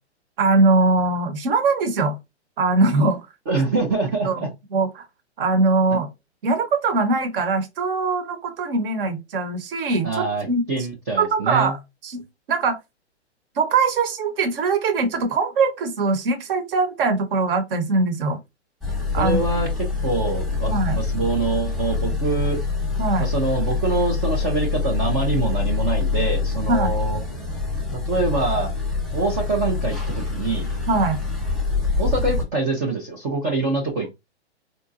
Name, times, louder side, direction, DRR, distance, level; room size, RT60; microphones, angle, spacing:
voice 1, 0.4-2.2 2.6-3.3 4.2-4.4 4.7-5.0 5.4-6.1 6.4-10.6 11.2-11.8 12.0-12.2 12.5-12.8 13.6-18.4 19.1-19.4 20.7-21.0 23.0-23.3 26.7-26.9 30.9-31.2, right 3 dB, 55° right, 1.0 m, -21 dB
voice 2, 3.5-4.5 5.9-6.0 10.0-11.7 19.2-19.7 20.0-22.6 23.2-27.2 28.0-28.7 29.1-30.7 32.0-34.1, right 3 dB, 15° right, 0.3 m, -25 dB
sound 1, 18.8-32.4, left 4 dB, ahead, 0.9 m, -25 dB
3.9 x 2.2 x 2.5 m
hypercardioid pair, 130°, 34 cm